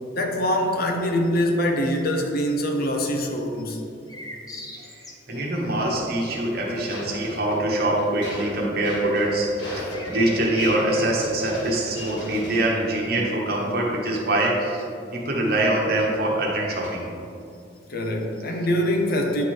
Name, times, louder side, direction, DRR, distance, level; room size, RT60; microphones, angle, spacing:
voice 1, 0.1-3.8 17.9-19.4, equal, 55° left, 3 dB, 0.7 m, -24 dB
sound 1, 4.1-5.5 9.9-11.4, left 1 dB, 20° left, 0.6 m, -36 dB
voice 2, 4.7-14.8 15.1-17.1, right 1 dB, 55° right, -2 dB, 1.1 m, -24 dB
sound 2, 5.3-15.1 15.9-17.1, equal, 70° left, 1.4 m, -37 dB
9.3 x 3.2 x 4.3 m, 2.5 s
head